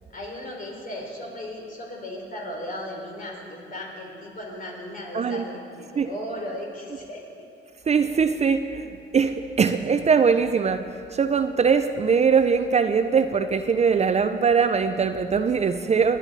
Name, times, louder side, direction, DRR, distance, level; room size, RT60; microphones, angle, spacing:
voice 1, 0.1-7.2, left 1 dB, 45° left, -1 dB, 3.5 m, -36 dB
voice 2, 7.9-10.8 11.1-16.2, right 6 dB, 35° right, 9 dB, 0.5 m, -21 dB
20.0 x 9.8 x 4.1 m, 2.4 s
cardioid pair, 90°, 20 cm